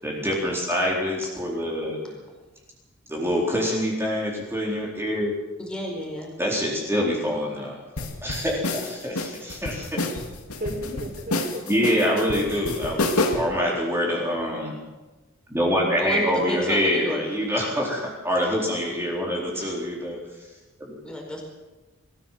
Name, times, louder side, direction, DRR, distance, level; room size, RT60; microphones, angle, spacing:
voice 1, 0.0-2.2 3.1-5.3 6.4-9.9 11.7-14.7 15.5-20.2 20.8-21.0, equal, 10° right, -3 dB, 4.2 m, -25 dB
voice 2, 5.6-6.3 16.0-17.3 19.5-19.7 21.0-21.4, equal, 5° left, 0 dB, 4.9 m, -31 dB
sound 1, 8.0-13.6, left 2 dB, 85° left, 2.5 m, -28 dB
voice 3, 10.6-12.9, equal, 40° right, 1 dB, 5.3 m, -35 dB
22.5 x 15.5 x 7.6 m, 1.2 s
head